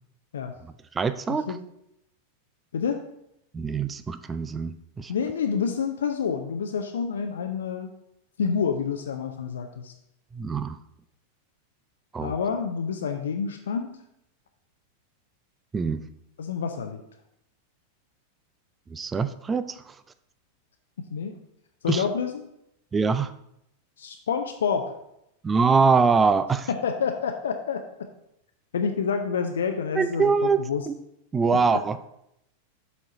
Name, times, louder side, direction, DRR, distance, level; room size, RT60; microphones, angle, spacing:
voice 1, 0.9-1.5 3.5-5.1 10.3-10.8 12.1-12.3 15.7-16.0 18.9-19.9 21.9-22.0 22.9-23.3 25.4-26.7 30.0-30.9 31.3-32.1, right 5 dB, 15° right, 13 dB, 0.4 m, -24 dB
voice 2, 2.7-3.0 5.1-7.9 8.4-9.9 12.2-14.0 16.4-17.0 21.1-21.3 21.8-22.4 24.0-24.9 26.8-27.8 28.7-30.9, left 6 dB, 65° left, 5 dB, 0.6 m, -28 dB
7.2 x 4.4 x 5.1 m, 0.79 s
figure-of-eight pair, 90°, 0 cm